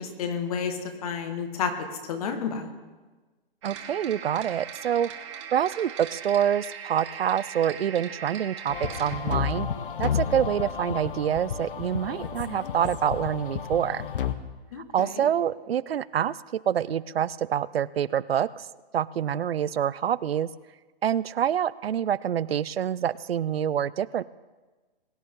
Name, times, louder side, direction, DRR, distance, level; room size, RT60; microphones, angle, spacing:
voice 1, 0.0-1.7 2.1-2.7 14.7-15.3, left 6 dB, 40° left, 7 dB, 1.6 m, -31 dB
sound 1, 3.6-9.2, right 8 dB, 30° right, 1.4 m, -40 dB
voice 2, 3.6-5.1 5.5-9.7 10.0-14.0 14.9-16.4 16.7-18.6 18.9-20.5 21.0-24.2, right 9 dB, 80° right, 19 dB, 0.5 m, -26 dB
sound 2, 8.7-14.3, left 8 dB, 65° left, 1.0 m, -31 dB
21.5 x 9.4 x 3.7 m, 1.2 s
hypercardioid pair, 155°, 30 cm